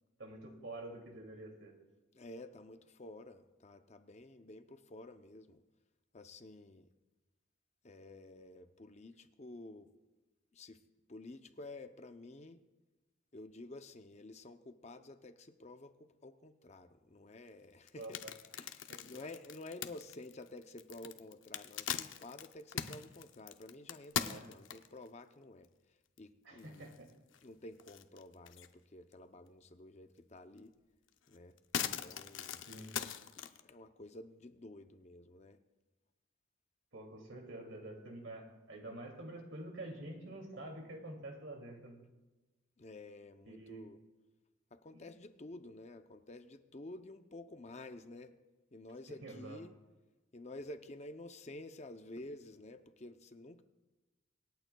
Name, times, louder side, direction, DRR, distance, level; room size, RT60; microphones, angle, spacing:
voice 1, 0.2-1.7 18.0-18.3 18.9-19.1 24.3-24.5 26.4-27.1 32.7-32.9 36.9-42.0 43.4-43.8 44.9-45.0 49.1-49.6, right 1 dB, 80° right, 2 dB, 2.5 m, -47 dB
voice 2, 2.1-5.6 6.1-6.9 7.8-9.9 10.5-10.8 11.1-12.6 13.3-18.2 18.6-25.7 26.2-26.9 27.4-30.7 31.3-31.5 32.0-32.7 33.4-35.6 42.8-44.0 44.7-48.3 48.7-49.7 50.3-53.6, left 2 dB, 35° left, 8 dB, 0.6 m, -51 dB
sound 1, 17.9-25.1 25.6-25.7 26.2-26.3 26.6-27.4 27.8-28.7 29.1-29.2 30.6-30.7 31.1-33.6, left 9 dB, 75° left, 0.6 m, -41 dB
26.0 x 9.0 x 2.3 m, 1.1 s
head